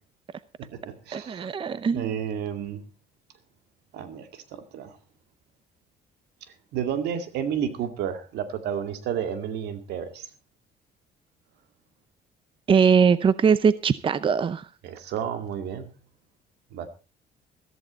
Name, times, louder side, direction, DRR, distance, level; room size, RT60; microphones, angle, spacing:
voice 1, 0.6-1.5 1.9-2.8 3.9-4.9 6.7-10.3 14.8-16.0 16.7-16.9, right 8 dB, 80° right, 2.3 m, -31 dB
voice 2, 1.1-2.1 12.7-14.7, right 6 dB, 30° right, 0.7 m, -21 dB
14.5 x 14.0 x 4.2 m
cardioid pair, 110°, 17 cm